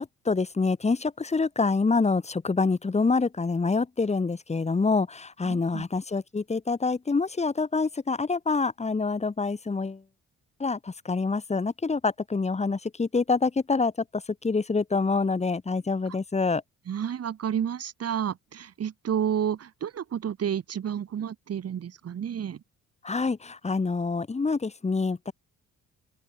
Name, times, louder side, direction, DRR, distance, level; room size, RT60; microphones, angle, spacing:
voice 1, 0.0-10.0 10.6-16.6 23.0-25.3, left 4 dB, 20° left, 1.6 m, -26 dB
voice 2, 5.5-5.8 16.9-22.6, right 9 dB, 55° right, 2.1 m, -30 dB
open air
cardioid pair, 90°, 30 cm